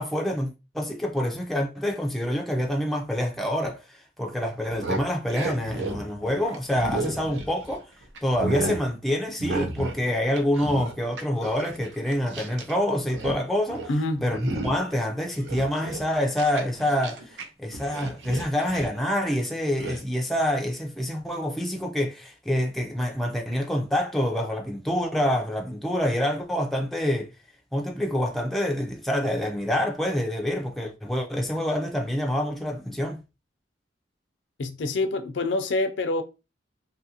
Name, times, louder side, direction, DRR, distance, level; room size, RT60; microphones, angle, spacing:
voice 1, 0.0-7.8 8.2-13.9 14.2-27.3 27.7-33.2, left 1 dB, ahead, 0.4 m, -27 dB
sound 1, 4.6-7.8 8.2-8.8 9.4-10.0 10.3-12.7 13.0-13.4 13.7-13.9 14.3-14.9 15.3-17.4 17.7-19.0 19.8-20.0, right 2 dB, 75° right, 0.6 m, -33 dB
voice 2, 13.9-14.3 34.6-36.2, left 2 dB, 75° left, 0.5 m, -26 dB
2.7 x 2.5 x 2.8 m
head